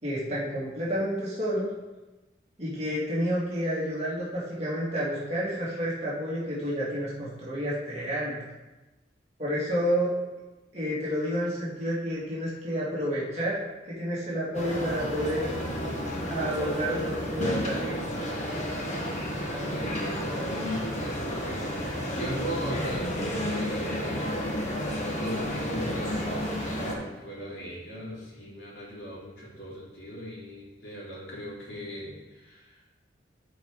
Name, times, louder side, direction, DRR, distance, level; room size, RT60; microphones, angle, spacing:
voice 1, 0.0-1.7 2.6-8.4 9.4-10.1 10.7-13.6 13.9-15.5 16.2-18.0, equal, 35° right, -8 dB, 2.0 m, -30 dB
sound 1, 14.5-26.9, equal, 40° left, 1.3 m, -31 dB
voice 2, 19.6-24.7 25.2-32.9, equal, 75° left, -6 dB, 3.0 m, -38 dB
12.5 x 4.6 x 3.7 m, 1.1 s
head